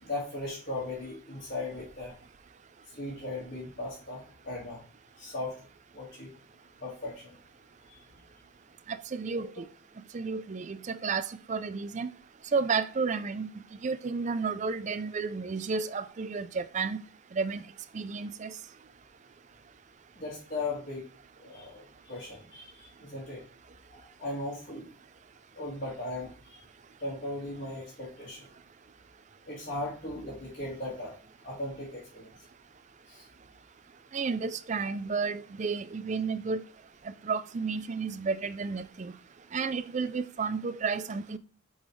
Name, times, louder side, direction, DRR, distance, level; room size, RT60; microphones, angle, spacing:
voice 1, 0.0-2.2 3.0-4.8 5.2-5.6 5.9-6.3 6.8-7.3 7.9-8.0 20.2-21.0 21.4-23.4 23.9-24.9 25.5-26.6 27.0-28.5 29.5-31.1 31.4-32.3 33.1-33.3, left 2 dB, 40° left, 1.8 m, -38 dB
voice 2, 8.9-9.7 10.1-12.1 12.5-13.5 13.8-17.0 17.3-17.6 17.9-18.5 34.1-36.6 37.1-39.1 39.5-41.4, right 4 dB, 35° right, 0.4 m, -32 dB
8.7 x 3.9 x 3.2 m
head